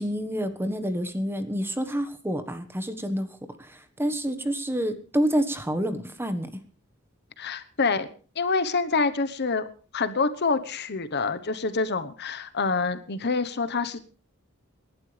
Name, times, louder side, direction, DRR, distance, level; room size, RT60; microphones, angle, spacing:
voice 1, 0.0-6.5, equal, 10° right, 9 dB, 1.4 m, -28 dB
voice 2, 7.4-8.1 8.4-9.6 9.9-14.0, left 4 dB, 55° left, 12 dB, 1.1 m, -26 dB
28.5 x 11.5 x 3.4 m, 0.39 s
head